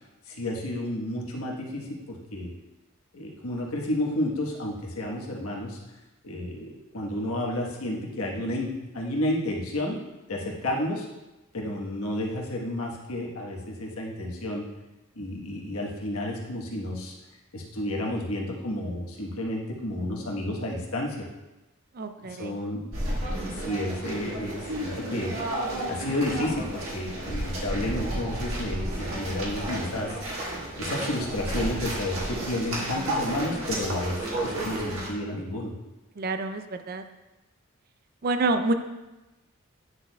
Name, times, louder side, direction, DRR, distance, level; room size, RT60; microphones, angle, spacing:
voice 1, 0.3-2.5 3.1-5.8 6.2-10.0 10.3-11.1 11.5-14.7 15.1-17.1 17.5-21.3 22.2-22.9 23.5-30.2 30.8-35.7, left 1 dB, 75° left, -2 dB, 1.2 m, -31 dB
voice 2, 21.9-22.6 33.0-33.1 36.2-37.0 38.2-38.7, right 2 dB, 45° right, 8 dB, 0.4 m, -28 dB
sound 1, 22.9-35.1, right 1 dB, 65° right, 1.6 m, -32 dB
9.6 x 6.2 x 2.3 m, 1.1 s
head